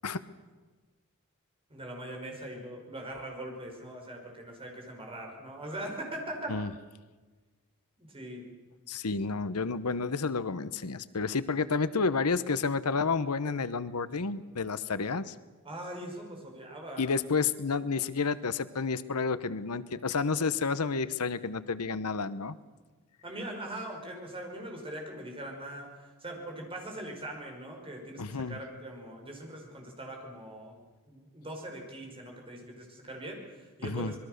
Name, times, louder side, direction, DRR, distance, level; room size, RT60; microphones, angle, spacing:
voice 1, 1.7-6.5 8.0-8.4 15.6-17.1 23.2-25.9 26.2-30.8 31.1-34.2, right 1 dB, 25° right, 1 dB, 5.5 m, -41 dB
voice 2, 8.9-15.3 17.0-22.6 28.2-28.6 33.8-34.1, left 4 dB, 90° left, 15 dB, 1.0 m, -30 dB
26.5 x 21.0 x 6.6 m, 1.3 s
head